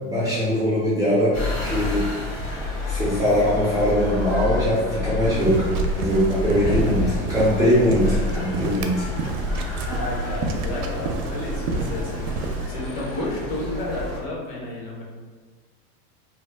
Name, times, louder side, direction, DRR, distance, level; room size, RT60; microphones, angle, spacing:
voice 1, 0.0-2.3 2.9-9.1, equal, 10° right, -10 dB, 0.4 m, -21 dB
sound 1, 1.3-14.2, left 3 dB, 75° left, 1.2 m, -31 dB
sound 2, 5.2-12.7, right 2 dB, 85° right, 0.6 m, -28 dB
voice 2, 6.4-7.2 8.0-9.1 9.9-15.0, left 1 dB, 50° left, -3 dB, 1.0 m, -32 dB
2.8 x 2.1 x 3.3 m, 1.5 s
supercardioid pair, 135°, 42 cm